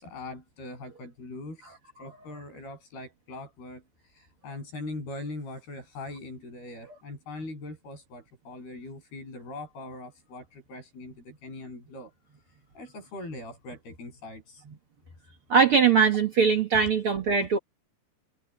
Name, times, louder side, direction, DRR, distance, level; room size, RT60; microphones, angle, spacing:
voice 1, 0.0-12.1 12.4-14.6, left 2 dB, 85° left, 9.8 m, -41 dB
voice 2, 15.5-17.6, right 6 dB, 60° right, 1.5 m, -21 dB
omnidirectional pair, 4.4 m